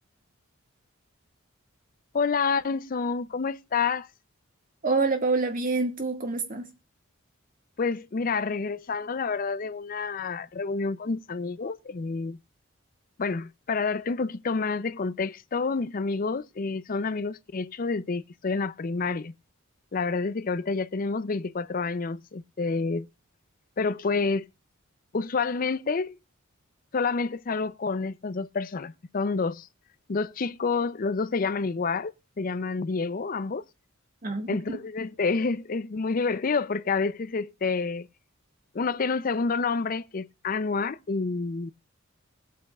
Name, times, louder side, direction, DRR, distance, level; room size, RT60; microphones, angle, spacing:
voice 1, 2.1-4.1 7.8-12.4 13.2-19.3 19.9-23.1 23.8-24.5 25.1-26.2 26.9-29.7 30.1-33.6 34.5-38.1 38.7-41.7, left 4 dB, 40° left, 0.5 m, -28 dB
voice 2, 4.8-6.7 34.2-34.8, right 3 dB, 40° right, 1.8 m, -27 dB
20.0 x 8.4 x 2.3 m
head